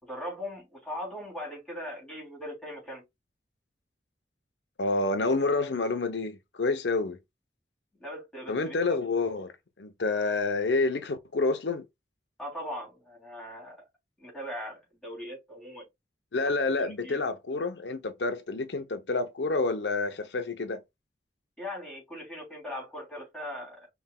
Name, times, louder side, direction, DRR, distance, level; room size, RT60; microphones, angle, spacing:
voice 1, 0.0-3.0 7.9-9.0 12.4-13.8 14.2-15.8 16.4-17.2 21.6-23.9, left 1 dB, 5° left, 3.1 m, -40 dB
voice 2, 4.8-7.2 8.5-11.8 16.3-20.8, left 3 dB, 85° left, 0.7 m, -28 dB
5.5 x 3.5 x 2.3 m
head